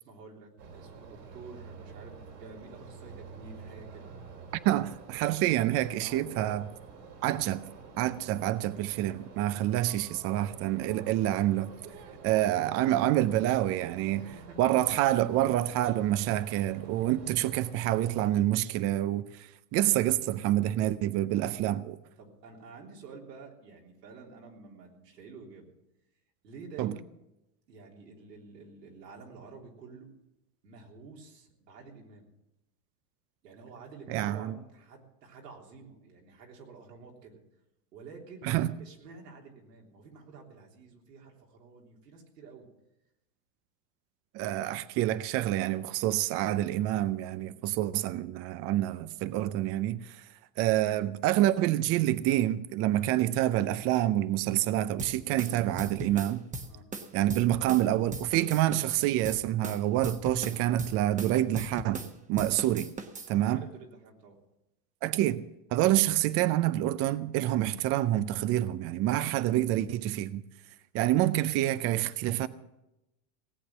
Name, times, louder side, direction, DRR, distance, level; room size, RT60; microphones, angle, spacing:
voice 1, 0.0-4.1 6.0-6.6 14.2-14.6 21.3-21.6 22.2-25.7 26.4-27.1 27.7-30.1 30.6-32.3 33.4-37.4 37.9-38.5 38.8-42.7 47.3-47.5 56.7-56.9 63.3-64.4, right 4 dB, 90° right, 3.4 m, -49 dB
sound 1, 0.6-18.3, right 5 dB, 70° right, 3.5 m, -49 dB
voice 2, 4.6-6.6 7.2-7.7 8.0-11.7 12.2-14.3 14.6-22.0 26.8-26.9 34.1-34.5 38.4-38.7 44.3-50.2 50.6-56.4 57.1-62.9 63.3-63.6 65.0-65.4 65.7-70.4 70.9-72.5, right 14 dB, 30° right, 0.5 m, -27 dB
sound 2, 55.0-57.9 58.1-62.1 62.4-63.3, right 2 dB, 15° right, 1.0 m, -39 dB
17.5 x 7.9 x 7.2 m
supercardioid pair, 120°, 47 cm